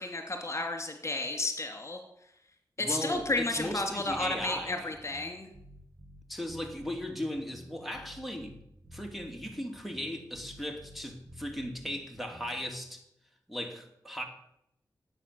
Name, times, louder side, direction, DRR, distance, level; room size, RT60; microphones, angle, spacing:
voice 1, 0.0-2.0 2.8-5.5, left 2 dB, 35° left, 4 dB, 2.7 m, -32 dB
voice 2, 2.8-4.9 6.3-8.5 8.9-13.0 13.5-14.2, equal, ahead, 3 dB, 2.8 m, -37 dB
sound 1, 3.1-12.7, equal, 40° right, 6.7 m, -52 dB
17.5 x 8.2 x 7.1 m, 0.78 s
cardioid pair, 50°, 8 cm